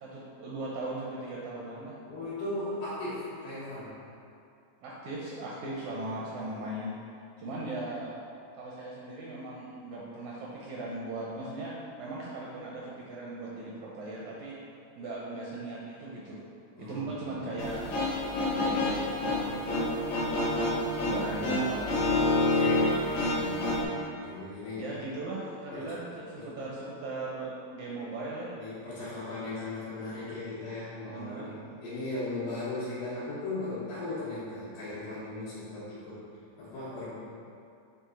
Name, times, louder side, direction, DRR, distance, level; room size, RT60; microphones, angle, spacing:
voice 1, 0.0-2.0 4.8-7.0 7.4-8.1 8.6-11.7 12.0-14.6 15.0-16.4 16.8-17.8 18.6-20.0 21.1-22.1 24.8-28.5 31.1-31.6, right 2 dB, 75° right, -5 dB, 1.7 m, -38 dB
voice 2, 2.1-4.0 7.5-7.6 16.8-17.4 21.0-21.3 22.4-24.9 25.7-25.9 26.3-26.5 28.6-36.2 36.6-37.1, left 2 dB, 80° left, -14 dB, 3.3 m, -38 dB
sound 1, 17.6-23.8, left 2 dB, 65° left, 2.0 m, -28 dB
8.6 x 3.5 x 3.8 m, 2.5 s
omnidirectional pair, 4.0 m